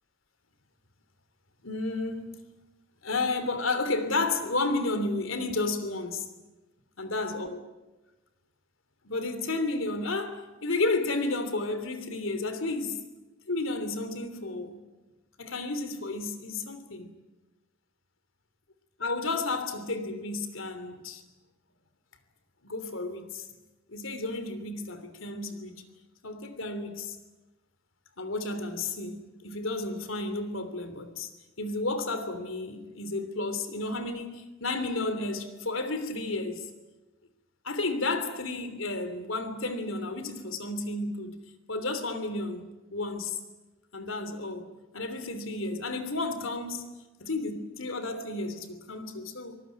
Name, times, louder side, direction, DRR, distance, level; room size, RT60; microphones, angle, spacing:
voice 1, 1.6-2.4 3.0-6.3 7.0-7.6 9.0-13.0 13.5-14.8 15.4-17.1 19.0-21.2 22.6-23.5 23.9-25.8 26.2-27.2 28.2-31.3 31.6-36.7 37.6-41.3 41.7-43.4 43.9-46.9 47.2-49.6, left 2 dB, 80° left, 3.2 m, -32 dB
24.5 x 19.5 x 9.4 m
head